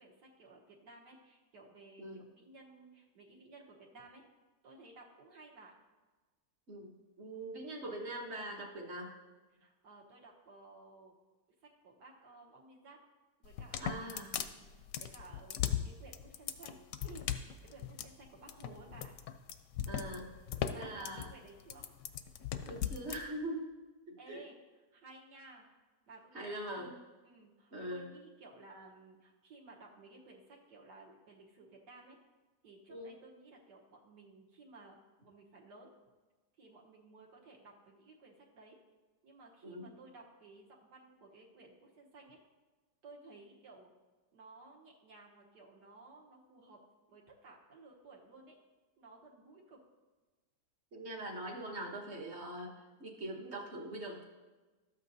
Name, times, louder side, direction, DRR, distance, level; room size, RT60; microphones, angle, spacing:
voice 1, 0.0-4.2 4.6-5.7 9.5-11.1 11.8-13.0 13.4-14.1 14.4-19.1 20.7-21.9 24.2-25.7 26.1-27.0 27.2-32.2 32.6-35.0 35.2-35.9 36.6-38.8 39.2-42.4 43.0-43.9 44.3-46.8 47.1-48.6 49.0-49.8, right 3 dB, 80° right, -1 dB, 1.8 m, -56 dB
voice 2, 6.7-9.1 13.8-14.3 19.9-20.3 20.7-21.3 22.6-23.7 24.1-24.4 26.3-27.0 27.7-28.1 32.9-33.1 39.6-39.9 50.9-52.7 53.0-54.2, right 1 dB, 45° right, -2 dB, 1.3 m, -42 dB
sound 1, 13.4-23.2, left 10 dB, 70° left, 0.9 m, -38 dB
12.5 x 8.2 x 2.7 m, 1.3 s
omnidirectional pair, 1.8 m